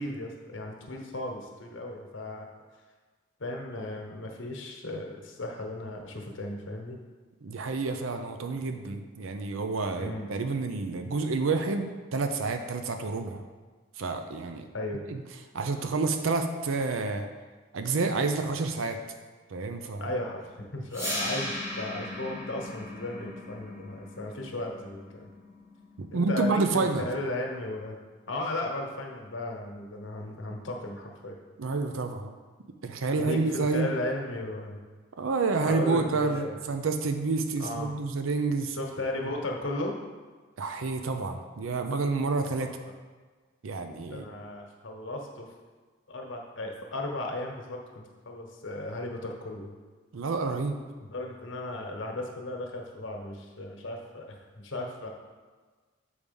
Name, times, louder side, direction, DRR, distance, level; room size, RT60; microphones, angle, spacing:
voice 1, 0.0-2.5 3.4-7.0 10.0-10.3 14.7-15.0 20.0-25.3 26.1-28.0 28.3-31.4 33.2-34.8 35.7-36.6 37.6-37.9 38.7-39.9 44.1-45.5 46.1-49.7 51.0-55.1, left 1 dB, 75° left, 1 dB, 1.2 m, -35 dB
voice 2, 7.4-13.4 14.0-14.7 15.1-15.2 15.5-17.3 17.7-19.0 19.5-20.1 26.0-27.1 31.6-32.3 32.8-33.9 35.2-38.8 40.6-42.7 43.6-44.3 50.1-50.8, right 3 dB, 85° right, 7 dB, 0.6 m, -29 dB
sound 1, 20.9-26.9, left 1 dB, 15° right, 1.1 m, -38 dB
7.0 x 4.8 x 5.3 m, 1.4 s
head